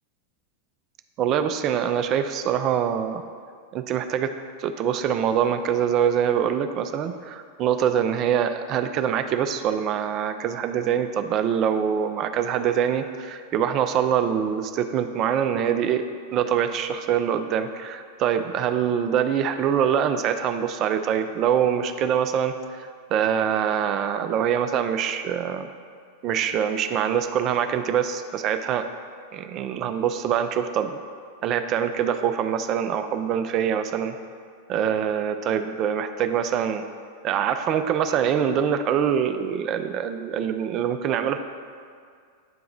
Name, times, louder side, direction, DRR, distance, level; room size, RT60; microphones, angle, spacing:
voice 1, 1.2-3.2 3.7-4.3 4.6-16.0 16.3-25.7 26.2-28.9 29.3-31.0 31.4-34.2 34.7-36.8 37.2-41.4, right 8 dB, 35° right, 8 dB, 0.3 m, -24 dB
8.6 x 2.9 x 3.8 m, 2.2 s
figure-of-eight pair, 90°, 0 cm